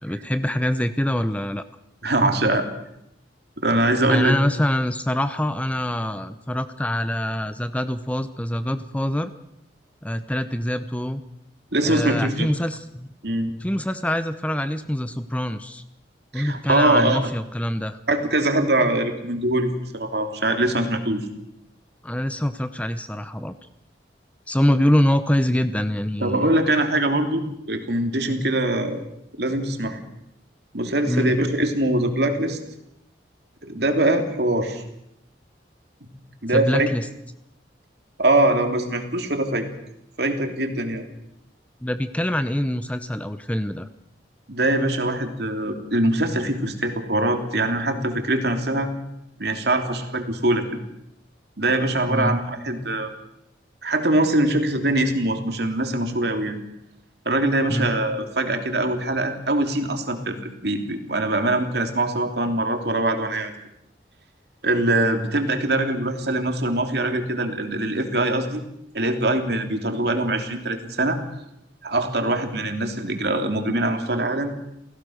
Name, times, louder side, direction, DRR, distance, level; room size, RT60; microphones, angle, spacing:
voice 1, 0.0-1.6 4.1-9.3 10.0-11.2 11.8-13.1 13.6-15.8 16.3-18.0 22.0-23.5 24.5-26.5 27.4-27.5 31.1-31.4 36.5-37.1 41.8-43.9 52.1-52.4 57.7-57.9, left 1 dB, 10° left, 10 dB, 0.8 m, -24 dB
voice 2, 2.0-2.6 3.6-4.3 11.7-12.5 13.2-13.5 16.3-17.3 18.1-21.3 26.2-29.0 29.4-30.0 30.7-32.6 33.6-34.8 36.4-36.9 38.2-39.7 40.2-41.0 44.5-48.9 49.4-50.6 51.6-53.1 53.8-56.6 57.2-60.4 60.6-63.5 64.6-68.6 68.9-71.2 71.8-74.5, right 1 dB, 60° right, 5 dB, 3.1 m, -23 dB
29.0 x 17.0 x 6.5 m, 0.82 s
head